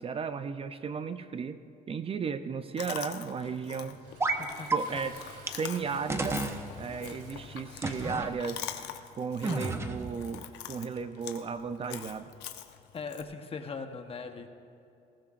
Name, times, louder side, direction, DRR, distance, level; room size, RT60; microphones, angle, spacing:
voice 1, 0.0-1.6 1.9-4.0 4.7-5.2 5.5-6.4 6.8-8.7 9.2-12.3, right 5 dB, 35° right, 11 dB, 0.5 m, -35 dB
Chewing mastication, 2.8-13.2, left 11 dB, 85° left, 0.9 m, -44 dB
Toilet flush, 4.0-11.8, right 3 dB, 90° right, 3.4 m, -55 dB
sound 1, 4.2-4.4 4.7-4.8 5.5-5.6 6.1-6.6 7.8-8.3 9.4-10.1, right 3 dB, 15° right, 0.9 m, -31 dB
voice 2, 4.3-5.0 12.9-14.5, left 5 dB, 35° left, 6 dB, 1.1 m, -41 dB
19.5 x 16.0 x 2.5 m, 2.8 s
cardioid pair, 110°, 17 cm